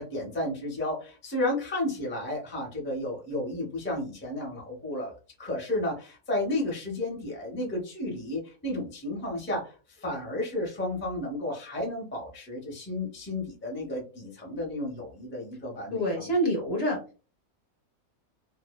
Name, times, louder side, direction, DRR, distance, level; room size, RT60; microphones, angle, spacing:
voice 1, 0.0-5.1 5.4-16.3, left 1 dB, 15° left, -2 dB, 0.3 m, -32 dB
voice 2, 15.9-17.2, equal, 55° left, 1 dB, 0.8 m, -27 dB
2.6 x 2.1 x 2.2 m, 0.35 s
omnidirectional pair, 1.6 m